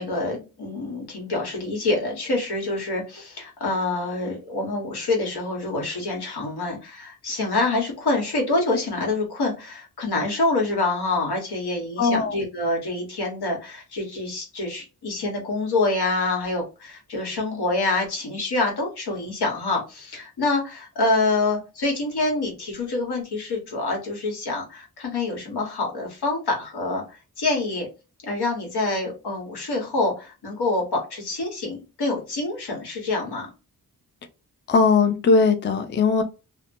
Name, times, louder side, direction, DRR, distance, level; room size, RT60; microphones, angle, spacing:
voice 1, 0.0-27.9 28.2-33.5 36.2-36.3, left 2 dB, 90° left, 1.2 m, -26 dB
voice 2, 12.0-12.4 34.7-36.2, left 4 dB, 30° left, 0.4 m, -19 dB
2.8 x 2.1 x 2.6 m
wide cardioid pair, 105°, 38 cm